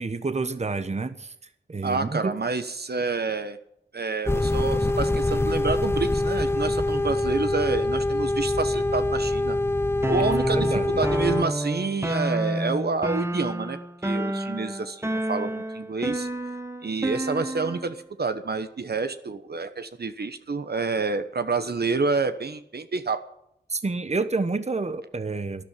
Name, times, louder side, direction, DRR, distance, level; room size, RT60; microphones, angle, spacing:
voice 1, 0.0-1.3 1.7-2.4 10.2-11.0 23.7-25.6, right 3 dB, 35° right, 11 dB, 1.1 m, -29 dB
voice 2, 1.8-3.6 3.9-9.6 10.1-13.8 14.0-16.3 16.8-23.2, right 4 dB, 60° right, 9 dB, 1.1 m, -28 dB
sound 1, 4.3-11.4, left 2 dB, 15° left, 0.7 m, -24 dB
sound 2, 10.0-17.9, right 1 dB, 15° right, 1.3 m, -29 dB
12.5 x 11.5 x 8.9 m, 0.76 s
wide cardioid pair, 65°, 18 cm